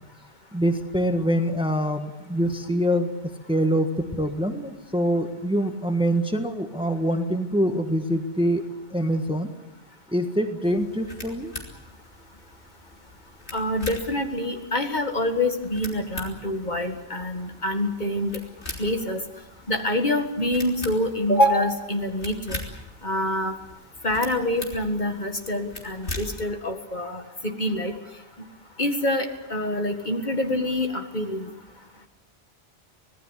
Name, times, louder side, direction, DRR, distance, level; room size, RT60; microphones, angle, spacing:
voice 1, 0.5-3.1 3.5-8.6 8.9-9.5 10.1-11.5, equal, 5° right, 6 dB, 1.5 m, -24 dB
sound 1, 10.6-26.5, left 2 dB, 75° left, 3.9 m, -41 dB
voice 2, 13.5-18.4 18.8-19.2 19.7-22.6 23.0-23.5 24.0-27.9 28.8-31.5, left 1 dB, 45° left, 5 dB, 2.0 m, -26 dB
25.5 x 18.0 x 8.4 m, 1.0 s
omnidirectional pair, 1.1 m